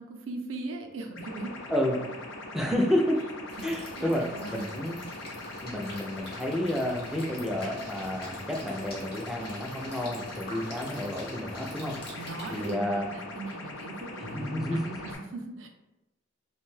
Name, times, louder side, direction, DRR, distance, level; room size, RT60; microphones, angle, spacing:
voice 1, 0.0-1.5 3.6-3.7 4.0-4.7 12.1-15.7, right 2 dB, 75° right, 3 dB, 0.4 m, -39 dB
sound 1, 1.2-15.2, left 2 dB, 70° left, 0.5 m, -41 dB
voice 2, 2.5-3.2 3.6-4.2 4.5-5.0 5.6-12.0 12.5-13.1 14.2-15.0, left 1 dB, ahead, 0 dB, 0.3 m, -30 dB
sound 2, 3.5-12.7, left 1 dB, 55° left, 0.9 m, -45 dB
2.6 x 2.2 x 3.1 m, 0.96 s
head